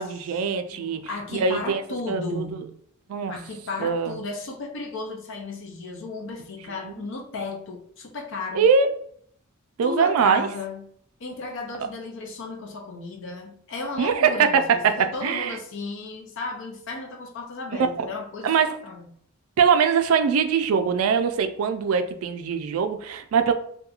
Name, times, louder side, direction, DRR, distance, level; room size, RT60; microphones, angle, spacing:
voice 1, 0.0-2.6 3.1-3.3 3.8-4.2 6.8-6.9 8.5-8.9 9.8-10.5 14.0-15.6 18.0-18.1 18.4-18.7 19.6-23.5, right 6 dB, 75° right, 8 dB, 0.3 m, -22 dB
voice 2, 0.7-2.7 3.3-8.7 9.8-10.8 11.2-19.1, left 3 dB, 60° left, 2 dB, 0.5 m, -34 dB
2.8 x 2.2 x 2.3 m, 0.64 s
head